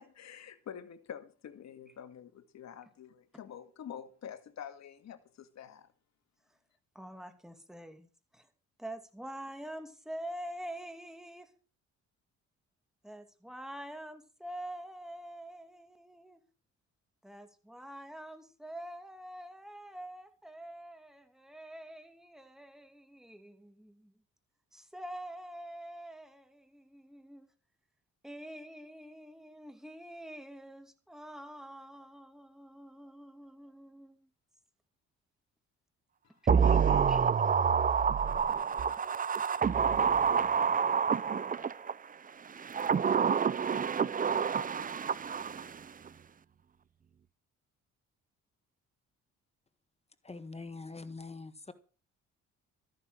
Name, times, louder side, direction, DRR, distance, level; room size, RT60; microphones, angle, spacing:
voice 1, 0.0-5.9 36.2-37.3, left 8 dB, 65° left, 1.9 m, -47 dB
voice 2, 6.9-8.5 8.8-11.5 13.0-16.4 17.2-24.2 24.7-27.5 28.2-34.3 37.1-37.3, right 1 dB, ahead, 2.5 m, -46 dB
sound 1, 36.5-41.9 42.6-45.8 46.1-46.2, right 6 dB, 30° right, 0.6 m, -28 dB
voice 3, 50.2-51.7, left 3 dB, 20° left, 1.6 m, -44 dB
13.5 x 9.7 x 6.3 m
cardioid pair, 90°, 30 cm